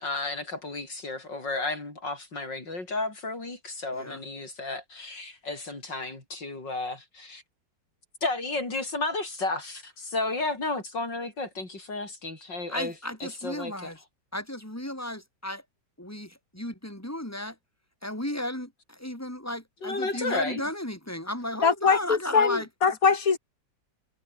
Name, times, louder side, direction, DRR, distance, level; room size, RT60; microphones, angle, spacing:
voice 1, 0.0-7.4 8.2-12.9 13.2-13.9 19.8-20.6, left 2 dB, 85° left, 6.6 m, -32 dB
voice 2, 12.7-14.0 14.3-15.6 16.0-17.6 18.0-22.7, left 1 dB, 10° left, 6.4 m, -34 dB
voice 3, 21.6-23.4, left 5 dB, 50° left, 2.4 m, -22 dB
omnidirectional pair, 1.9 m